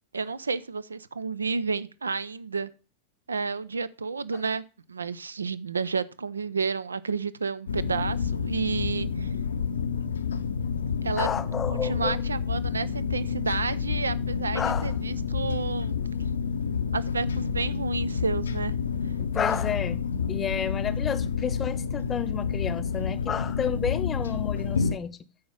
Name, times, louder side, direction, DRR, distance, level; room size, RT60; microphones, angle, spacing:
voice 1, 0.1-2.7 3.3-4.6 4.9-9.3 11.0-11.3 11.7-15.9 16.9-18.8 19.0-19.1, right 4 dB, 75° right, 0.4 m, -31 dB
sound 1, 7.7-25.0, left 6 dB, 70° left, 0.6 m, -29 dB
voice 2, 11.2-12.2 14.5-14.9 19.2-25.2, left 7 dB, 20° left, 0.6 m, -31 dB
8.6 x 5.0 x 5.4 m
figure-of-eight pair, 90°, 0 cm